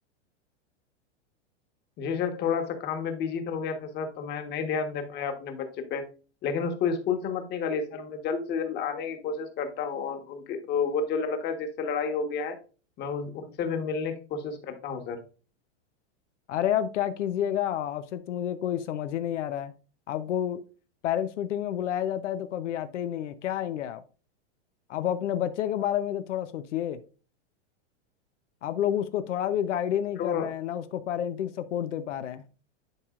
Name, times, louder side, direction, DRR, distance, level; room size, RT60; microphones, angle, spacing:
voice 1, 2.0-5.6 5.9-6.0 6.4-12.5 13.0-15.2 30.2-30.5, left 6 dB, 30° left, 7 dB, 1.3 m, -30 dB
voice 2, 16.5-19.7 20.1-20.6 21.0-24.0 24.9-27.0 28.6-32.4, left 10 dB, 85° left, 10 dB, 0.8 m, -29 dB
10.5 x 4.7 x 2.5 m, 0.35 s
supercardioid pair, 145°, 35 cm